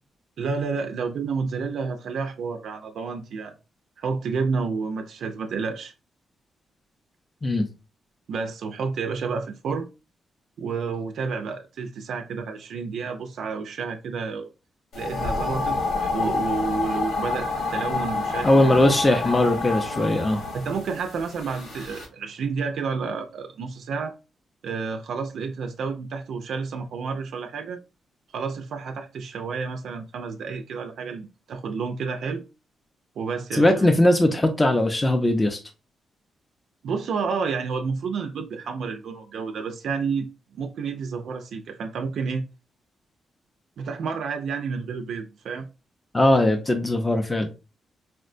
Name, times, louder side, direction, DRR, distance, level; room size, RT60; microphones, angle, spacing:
voice 1, 0.4-3.5 4.0-5.9 8.3-9.9 10.6-14.5 15.0-18.8 20.5-24.1 24.6-27.8 28.3-32.4 33.2-33.9 36.8-40.3 40.6-42.4 43.8-45.7, right 5 dB, 75° right, 0.3 m, -30 dB
sound 1, 14.9-22.1, left 3 dB, 85° left, 1.3 m, -28 dB
voice 2, 18.4-20.4 33.5-35.6 46.1-47.5, left 1 dB, 15° left, 0.4 m, -20 dB
4.2 x 2.1 x 2.4 m
cardioid pair, 125°, 0 cm